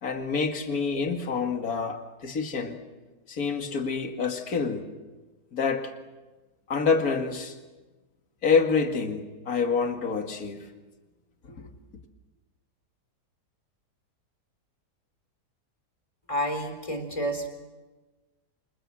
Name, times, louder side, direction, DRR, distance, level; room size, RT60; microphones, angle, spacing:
voice 1, 0.0-2.8 3.3-4.9 5.5-5.9 6.7-7.6 8.4-10.7 11.6-11.7, left 5 dB, 60° left, 5 dB, 2.5 m, -27 dB
voice 2, 16.3-17.5, equal, 20° left, 6 dB, 3.9 m, -29 dB
27.5 x 27.5 x 7.7 m, 1.2 s
omnidirectional pair, 1.7 m